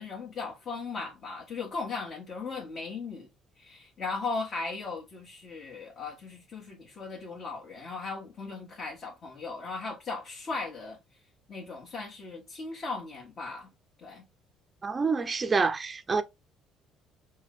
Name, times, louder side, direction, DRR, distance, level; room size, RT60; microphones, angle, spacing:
voice 1, 0.0-3.3 3.6-11.0 11.5-13.7 14.0-14.2, left 4 dB, 45° left, 1.3 m, -37 dB
voice 2, 14.8-16.2, right 4 dB, 25° right, 0.5 m, -27 dB
4.6 x 2.2 x 3.6 m
cardioid pair, 105°, 0 cm